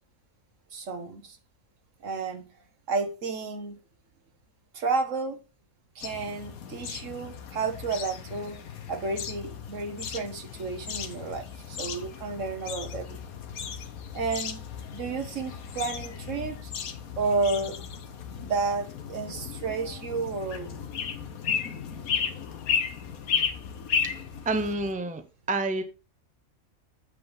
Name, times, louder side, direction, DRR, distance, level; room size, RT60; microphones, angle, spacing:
voice 1, 0.7-1.4 2.0-2.4 2.9-3.8 4.7-5.4 5.9-8.6 8.9-13.2 14.1-14.6 14.9-16.7 17.2-17.8 18.4-20.8 22.2-22.3, right 4 dB, 65° right, 1.5 m, -31 dB
sound 1, 6.0-24.9, left 7 dB, 85° left, 1.4 m, -35 dB
voice 2, 24.4-25.2 25.5-25.8, right 2 dB, 5° right, 0.8 m, -27 dB
8.5 x 7.5 x 4.0 m
omnidirectional pair, 1.5 m